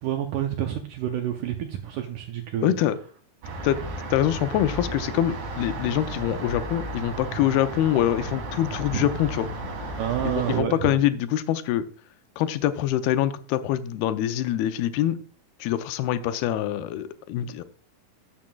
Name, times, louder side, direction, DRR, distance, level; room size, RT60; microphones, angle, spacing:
voice 1, 0.0-2.7 8.9-9.1 10.0-11.0, right 10 dB, 80° right, 1.8 m, -28 dB
voice 2, 2.6-3.0 3.6-3.8 4.1-9.5 10.2-11.9 12.4-15.2 15.6-17.6, left 12 dB, 90° left, 2.6 m, -25 dB
sound 1, 3.4-10.6, right 2 dB, 60° right, 2.9 m, -34 dB
12.5 x 7.2 x 2.3 m
omnidirectional pair, 4.3 m